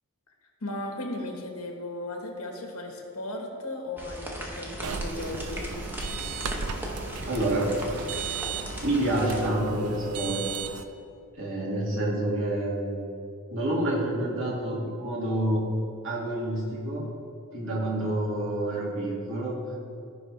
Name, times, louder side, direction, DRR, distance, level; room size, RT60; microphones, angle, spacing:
voice 1, 0.6-5.7, left 1 dB, 85° left, 2 dB, 1.4 m, -36 dB
sound 1, 4.0-9.5, equal, 10° right, 0.9 m, -38 dB
sound 2, 4.8-10.8, right 5 dB, 90° right, 0.5 m, -35 dB
voice 2, 7.3-7.7 8.8-10.7 11.3-13.1 13.5-15.6 16.0-17.0 17.5-19.6, right 1 dB, 60° right, -4 dB, 2.1 m, -28 dB
15.5 x 5.2 x 3.3 m, 2.4 s
head